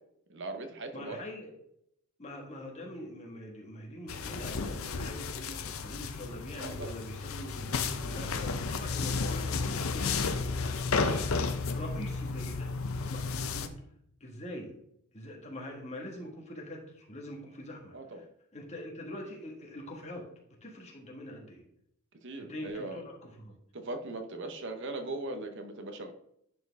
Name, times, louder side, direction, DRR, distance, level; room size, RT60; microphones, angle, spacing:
voice 1, 0.3-1.2 6.6-7.0 17.9-18.2 22.2-23.0 23.7-26.1, right 2 dB, 55° right, 7 dB, 0.8 m, -39 dB
voice 2, 0.9-1.5 2.2-12.7 13.1-13.7 14.2-14.7 15.1-18.3 18.5-21.6 22.4-23.6, left 1 dB, 30° left, -1 dB, 1.7 m, -44 dB
sound 1, 4.1-13.7, left 4 dB, 75° left, 0.7 m, -33 dB
10.5 x 4.4 x 3.5 m, 0.74 s
head